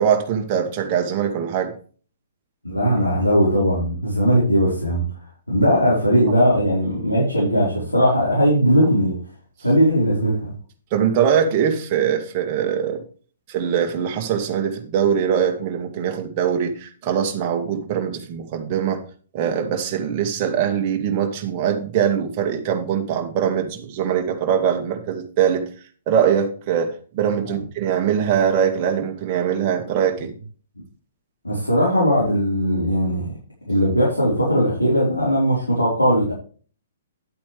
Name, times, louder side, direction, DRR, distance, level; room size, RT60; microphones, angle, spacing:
voice 1, 0.0-1.7 10.9-13.0 13.5-19.0 19.3-25.6 26.1-30.3, right 8 dB, 35° right, 4 dB, 2.2 m, -22 dB
voice 2, 2.6-5.0 5.5-9.1 9.6-10.5 27.4-27.6 31.4-33.3 33.7-36.3, equal, 85° left, -7 dB, 4.8 m, -19 dB
11.0 x 8.4 x 3.5 m, 0.41 s
figure-of-eight pair, 120°, 0 cm